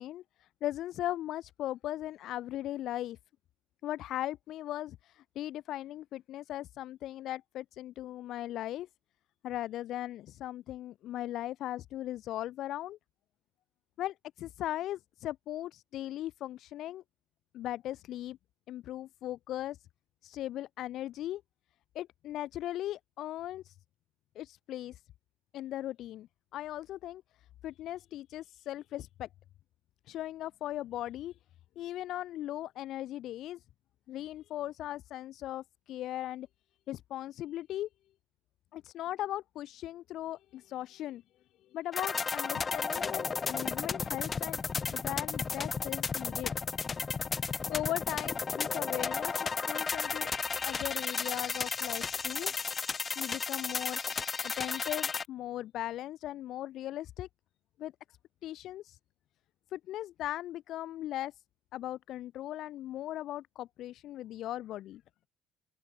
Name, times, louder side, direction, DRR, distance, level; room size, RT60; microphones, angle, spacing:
voice 1, 0.0-3.2 3.8-8.9 9.4-13.0 14.0-17.0 17.5-18.4 18.7-19.8 20.2-21.4 21.9-23.8 24.4-25.0 25.5-27.2 27.6-29.3 30.1-31.4 31.8-33.6 34.1-36.5 36.9-37.9 38.7-41.2 41.7-44.6 44.9-46.5 47.7-50.3 50.6-52.5 53.2-54.0 54.4-57.3 57.8-57.9 58.4-59.0 59.7-61.3 61.7-65.0, left 13 dB, 60° left, 3.7 m, -38 dB
sound 1, 41.9-55.2, left 5 dB, 25° left, 5.5 m, -34 dB
open air
cardioid pair, 125°, 0 cm